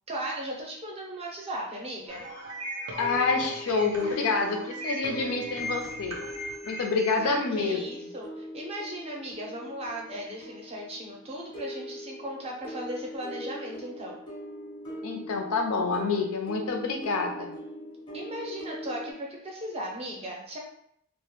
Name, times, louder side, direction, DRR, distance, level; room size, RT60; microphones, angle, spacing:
voice 1, 0.1-2.2 7.2-14.2 18.1-20.6, right 1 dB, 30° right, -1 dB, 0.5 m, -37 dB
sound 1, 2.1-7.1, right 1 dB, 85° right, 0.5 m, -38 dB
voice 2, 3.0-6.2 6.6-7.8 15.0-17.6, left 4 dB, 80° left, 3 dB, 0.4 m, -27 dB
sound 2, 3.0-19.1, equal, 20° left, 0.5 m, -41 dB
2.2 x 2.0 x 2.9 m, 0.71 s
head